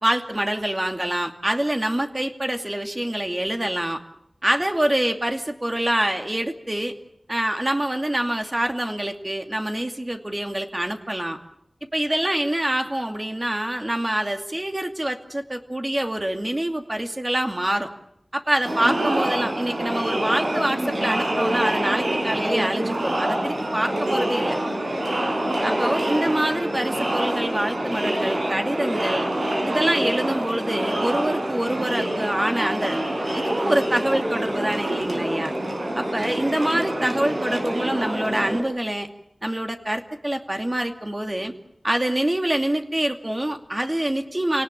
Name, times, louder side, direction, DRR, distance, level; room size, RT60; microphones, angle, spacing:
voice 1, 0.0-4.0 4.4-6.9 7.3-11.4 11.9-17.9 18.3-24.6 25.6-29.3 29.7-33.0 33.3-35.5 35.9-39.1 39.4-41.5 41.8-44.6, right 1 dB, 30° right, 5 dB, 2.5 m, -25 dB
Crowd, 18.7-38.6, right 1 dB, 75° right, 4.4 m, -26 dB
28.5 x 18.5 x 8.6 m, 0.75 s
wide cardioid pair, 60°, 0 cm